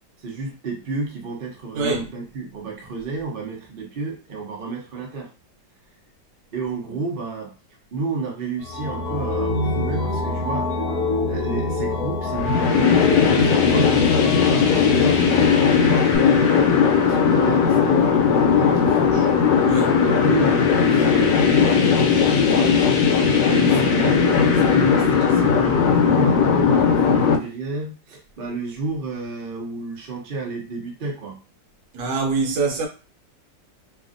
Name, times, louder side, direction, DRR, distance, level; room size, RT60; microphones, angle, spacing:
voice 1, 0.2-5.3 6.5-7.5 7.9-10.7 11.3-13.0 13.3-19.3 20.2-22.8 23.4-31.4, right 3 dB, 50° right, 0.6 m, -31 dB
voice 2, 1.7-2.1 19.7-20.0 31.9-32.9, right 4 dB, 75° right, 1.3 m, -24 dB
sound 1, 8.6-16.2, left 3 dB, 65° left, 1.2 m, -26 dB
sound 2, 12.4-27.4, left 6 dB, 80° left, 1.3 m, -17 dB
2.9 x 2.6 x 2.5 m
omnidirectional pair, 2.0 m